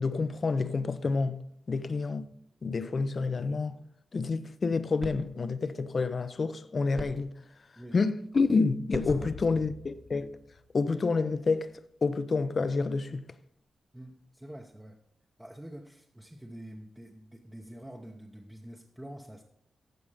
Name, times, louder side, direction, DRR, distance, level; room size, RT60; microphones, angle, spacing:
voice 1, 0.0-2.3 2.6-3.8 4.1-7.4 7.9-10.3 10.7-11.7 12.0-13.3, left 4 dB, 45° left, 0.6 m, -28 dB
sound 1, 4.4-10.8, right 3 dB, 50° right, 1.7 m, -49 dB
voice 2, 9.0-9.7 13.9-15.0 15.4-19.4, right 1 dB, 10° right, 0.9 m, -46 dB
sound 2, 9.1-11.5, left 4 dB, 65° left, 1.5 m, -44 dB
14.5 x 5.3 x 4.9 m
cardioid pair, 95°, 0 cm